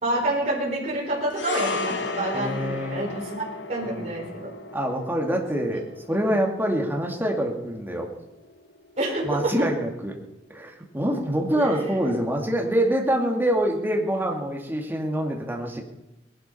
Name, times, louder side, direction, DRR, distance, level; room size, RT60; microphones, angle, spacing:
voice 1, 0.0-3.4 3.7-4.5 9.0-9.5 11.5-12.1, right 1 dB, 35° right, -5 dB, 4.9 m, -28 dB
sound 1, 1.3-9.8 10.0-10.2, left 3 dB, 80° left, 1.5 m, -35 dB
voice 2, 2.3-3.1 3.8-4.1 4.7-8.1 9.2-10.2 10.5-15.8, right 1 dB, 10° right, 0 dB, 2.6 m, -25 dB
20.0 x 12.0 x 5.7 m, 0.93 s
head